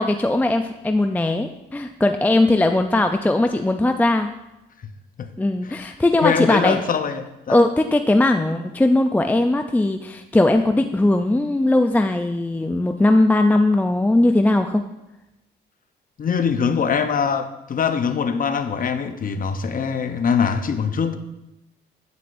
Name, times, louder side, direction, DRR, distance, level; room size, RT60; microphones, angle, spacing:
voice 1, 0.0-4.3 5.4-6.8 7.5-14.8, left 2 dB, 10° left, 6 dB, 0.4 m, -19 dB
voice 2, 6.2-7.6 16.2-21.2, left 6 dB, 45° left, 9 dB, 0.8 m, -23 dB
9.4 x 9.4 x 2.6 m, 0.94 s
cardioid pair, 90°, 20 cm